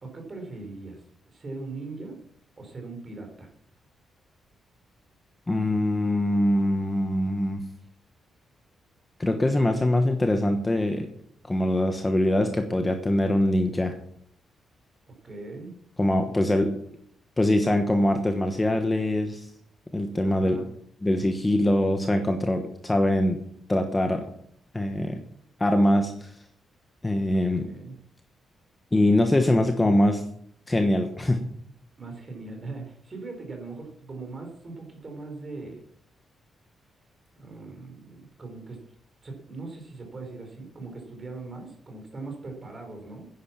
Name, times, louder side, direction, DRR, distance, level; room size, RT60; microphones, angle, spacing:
voice 1, 0.0-2.2 2.6-3.5 15.2-15.8 20.2-20.7 27.6-28.0 32.0-35.9 37.4-38.8 39.2-43.3, right 3 dB, 25° right, 3 dB, 4.3 m, -40 dB
voice 2, 5.5-7.6 9.2-11.1 11.5-13.9 16.0-16.7 17.4-19.5 19.9-20.6 21.0-23.4 23.7-24.3 24.7-25.2 25.6-26.3 27.0-27.7 28.9-30.2 30.7-31.4, left 1 dB, 15° left, 5 dB, 1.2 m, -23 dB
10.5 x 10.5 x 7.3 m, 0.65 s
wide cardioid pair, 160°, 0 cm